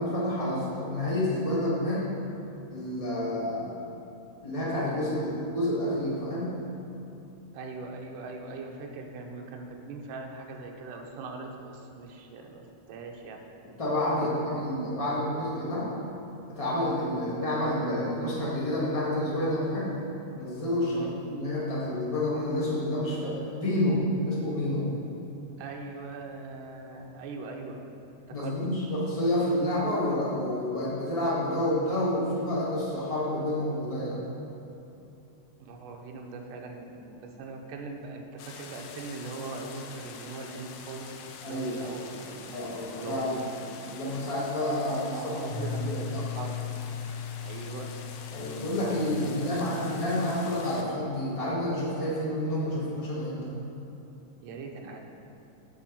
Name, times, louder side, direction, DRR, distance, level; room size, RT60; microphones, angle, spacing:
voice 1, 0.0-2.1 2.7-3.7 4.4-6.6 13.8-15.9 16.5-19.9 20.3-21.0 21.3-24.9 28.3-34.2 41.4-41.9 42.5-43.4 43.9-46.2 48.3-53.5, left 1 dB, 55° left, -8 dB, 0.4 m, -29 dB
voice 2, 7.5-13.4 14.2-14.4 14.8-15.9 20.9-21.2 25.6-27.8 28.3-28.6 35.6-42.5 43.0-43.6 44.8-46.6 47.4-47.9 48.8-50.2 54.4-55.1, right 3 dB, 75° right, 2 dB, 2.3 m, -41 dB
sound 1, 38.4-50.8, left 6 dB, 85° left, 2.4 m, -46 dB
Piano, 45.5-51.1, left 6 dB, 25° right, 1.6 m, -38 dB
8.6 x 4.6 x 7.2 m, 2.8 s
omnidirectional pair, 4.0 m